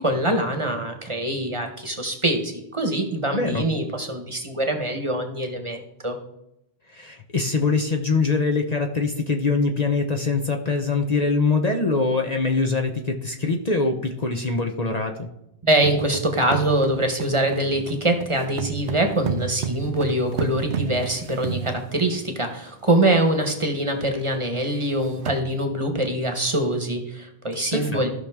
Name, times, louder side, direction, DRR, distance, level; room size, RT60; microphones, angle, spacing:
voice 1, 0.0-6.2 15.6-28.1, right 1 dB, 30° right, 5 dB, 1.2 m, -24 dB
voice 2, 3.3-3.7 6.9-15.3 27.7-28.1, left 3 dB, 40° left, 3 dB, 0.9 m, -23 dB
sound 1, 15.8-22.3 23.0-23.1 23.4-23.6 24.0-24.1 24.7-24.8 25.0-25.4, right 7 dB, 85° right, 0.9 m, -32 dB
14.5 x 5.8 x 3.6 m, 0.83 s
omnidirectional pair, 1.1 m